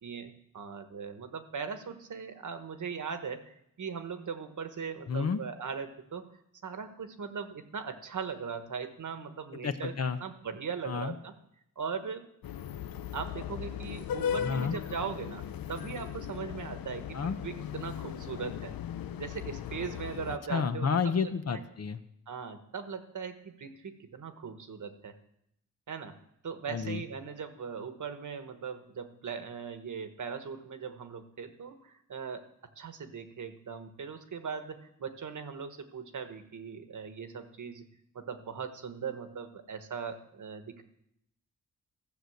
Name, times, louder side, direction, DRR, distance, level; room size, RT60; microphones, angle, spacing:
voice 1, 0.0-6.2 6.6-9.9 10.2-11.3 11.8-12.3 13.1-18.7 19.2-20.9 21.2-21.6 22.3-25.1 25.9-26.2 26.4-32.4 32.8-37.9 38.1-40.8, right 6 dB, 60° right, 8 dB, 1.3 m, -39 dB
voice 2, 5.1-5.4 9.6-10.2 10.9-11.2 14.4-14.8 17.1-17.4 20.5-22.0 26.7-27.0, left 6 dB, 45° left, 10 dB, 0.8 m, -30 dB
sound 1, 12.4-20.4, left 9 dB, 90° left, 0.6 m, -38 dB
14.5 x 6.7 x 7.8 m, 0.77 s
wide cardioid pair, 145°, 34 cm